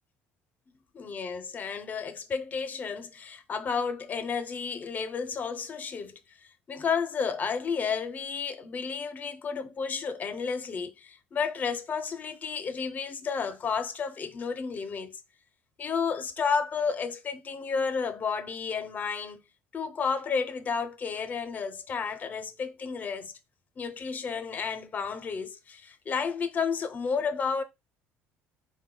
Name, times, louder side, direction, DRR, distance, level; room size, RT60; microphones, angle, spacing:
voice 1, 0.9-6.2 6.7-15.2 15.8-19.4 19.7-23.3 23.8-27.6, left 5 dB, 35° left, 0.6 m, -32 dB
3.9 x 2.2 x 3.7 m
supercardioid pair, 95°, 5 cm